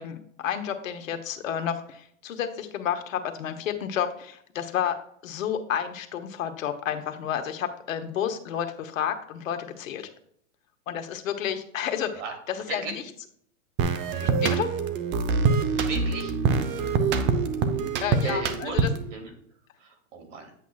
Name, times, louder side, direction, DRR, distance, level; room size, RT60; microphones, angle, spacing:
voice 1, 0.0-5.0 5.2-10.1 10.9-12.2 12.5-12.9 14.1-14.7 18.0-18.9, left 9 dB, 70° left, 7 dB, 1.2 m, -31 dB
sound 1, 13.8-19.1, right 5 dB, 25° right, 0.7 m, -25 dB
voice 2, 15.7-16.3 18.2-18.9 19.1-19.3 19.8-20.5, right 3 dB, 60° right, 4 dB, 2.7 m, -35 dB
9.6 x 8.2 x 2.3 m, 0.65 s
hypercardioid pair, 130°, 41 cm